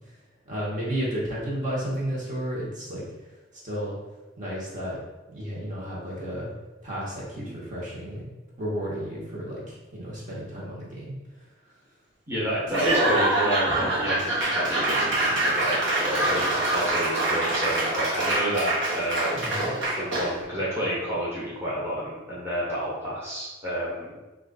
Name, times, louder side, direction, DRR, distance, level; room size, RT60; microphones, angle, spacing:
voice 1, 0.5-3.0 3.5-4.0 4.4-5.0 5.3-6.5 6.8-8.3 8.6-11.1 19.3-19.7, equal, 40° right, -6 dB, 1.0 m, -32 dB
voice 2, 12.3-19.6 20.0-24.2, equal, 15° right, -7 dB, 0.9 m, -30 dB
Laughter / Applause / Crowd, 12.7-20.4, right 1 dB, 65° right, 0.9 m, -25 dB
3.1 x 2.4 x 3.8 m, 1.1 s
head